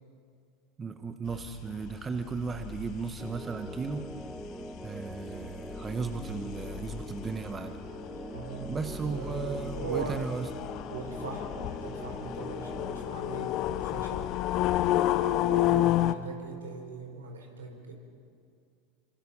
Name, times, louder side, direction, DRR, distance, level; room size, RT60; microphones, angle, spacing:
voice 1, 0.8-4.1 4.8-7.8 8.7-10.5, right 5 dB, 25° right, 7 dB, 1.5 m, -35 dB
sound 1, 1.3-16.1, left 13 dB, 50° left, 0.9 m, -32 dB
sound 2, 3.2-13.0, right 1 dB, 5° right, 1.2 m, -43 dB
voice 2, 8.3-10.2 10.9-14.3 15.3-17.9, right 4 dB, 85° right, 2 dB, 4.4 m, -40 dB
27.0 x 26.0 x 5.6 m, 2.3 s
hypercardioid pair, 85°, 0 cm